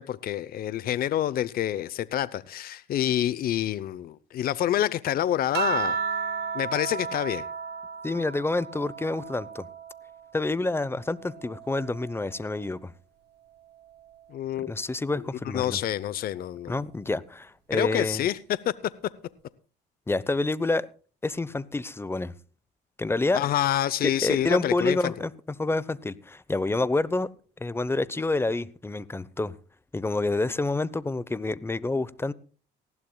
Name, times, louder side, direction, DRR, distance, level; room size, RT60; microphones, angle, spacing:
voice 1, 0.0-6.0 6.5-7.4 14.3-14.7 15.5-16.8 17.7-18.6 23.3-25.1, left 12 dB, 55° left, 0.7 m, -27 dB
sound 1, 5.5-10.3 10.8-12.5 13.7-14.2, right 6 dB, 65° right, 2.0 m, -34 dB
voice 2, 8.0-9.7 10.3-12.9 14.7-15.8 16.7-18.2 20.1-20.9 21.2-22.3 23.0-23.5 24.0-25.3 25.6-27.3 27.6-29.5 29.9-32.3, left 2 dB, 15° left, 0.8 m, -28 dB
19.0 x 16.0 x 2.3 m
cardioid pair, 100°, 18 cm